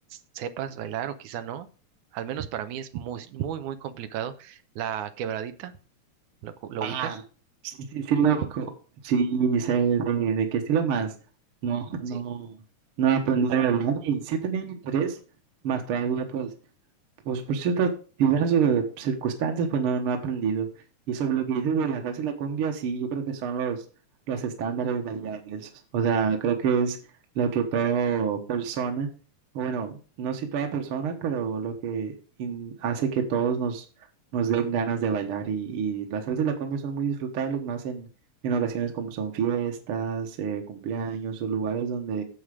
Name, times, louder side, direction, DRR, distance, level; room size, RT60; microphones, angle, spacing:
voice 1, 0.1-1.7 2.1-5.7 6.4-7.1 12.1-12.2 13.5-13.6, right 9 dB, 85° right, 10 dB, 2.2 m, -34 dB
voice 2, 6.8-7.2 7.6-8.7 9.0-11.1 11.6-12.6 13.0-15.2 15.6-16.5 17.2-17.9 18.2-20.7 21.1-23.8 24.3-27.0 27.3-29.1 29.5-32.1 32.4-33.9 34.3-38.1 38.4-42.2, right 7 dB, 55° right, 3 dB, 1.8 m, -27 dB
9.6 x 7.2 x 5.0 m, 0.37 s
omnidirectional pair, 3.4 m